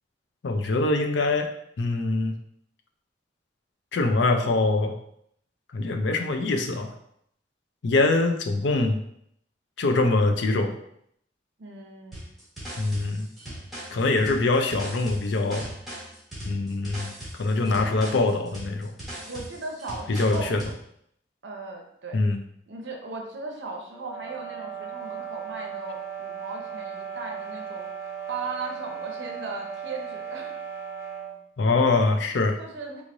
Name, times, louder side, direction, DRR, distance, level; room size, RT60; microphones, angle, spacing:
voice 1, 0.4-1.5 1.8-2.3 3.9-5.0 5.7-6.9 7.8-9.0 9.8-10.8 12.8-13.3 13.9-15.7 16.4-18.9 20.1-20.6 22.1-22.4 31.6-32.6, left 3 dB, 75° left, 6 dB, 0.5 m, -23 dB
voice 2, 11.6-12.3 19.2-20.6 21.4-22.2 22.7-27.9 28.3-30.6 32.6-33.0, right 3 dB, 80° right, 2 dB, 0.7 m, -37 dB
sound 1, 12.1-20.8, right 1 dB, ahead, 1.4 m, -39 dB
sound 2, 23.9-31.4, right 8 dB, 20° right, 0.6 m, -37 dB
3.6 x 3.1 x 2.6 m, 0.71 s
head